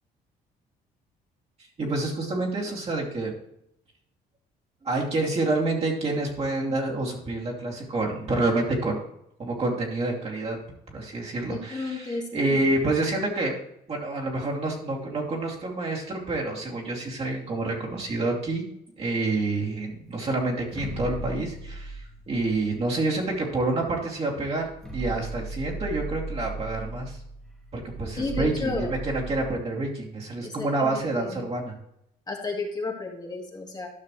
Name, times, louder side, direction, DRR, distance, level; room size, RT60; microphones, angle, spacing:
voice 1, 1.8-3.3 4.8-9.0 9.4-10.6 10.9-13.5 13.9-18.7 19.0-27.2 27.7-31.8, right 2 dB, 35° right, -2 dB, 2.7 m, -28 dB
voice 2, 11.5-12.7 28.1-28.9 30.4-31.4 32.3-33.9, left 3 dB, 25° left, 1 dB, 1.6 m, -33 dB
sound 1, 20.6-23.4 24.1-24.2 24.5-29.5, right 2 dB, ahead, 2.0 m, -37 dB
12.5 x 5.9 x 3.2 m, 0.78 s
cardioid pair, 110°, 17 cm